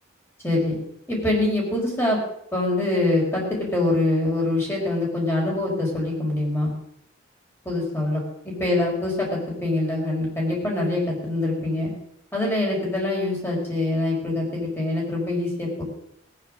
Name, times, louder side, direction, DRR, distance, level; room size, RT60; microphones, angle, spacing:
voice 1, 0.4-0.7 1.1-2.2 2.5-6.7 7.6-11.9 12.3-15.8, left 2 dB, 10° left, -3 dB, 4.8 m, -24 dB
17.5 x 9.6 x 6.3 m, 0.73 s
head